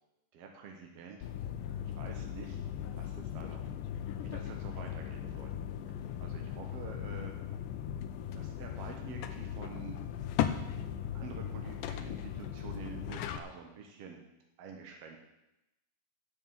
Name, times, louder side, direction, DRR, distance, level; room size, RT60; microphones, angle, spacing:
voice 1, 0.3-1.3 1.8-3.6 4.2-5.5 6.2-7.3 8.3-10.0 11.1-14.2 14.6-15.2, right 5 dB, 65° right, 2 dB, 1.6 m, -48 dB
sound 1, 1.2-13.4, left 9 dB, 80° left, 2.1 m, -38 dB
9.7 x 8.2 x 7.2 m, 0.93 s
omnidirectional pair, 4.1 m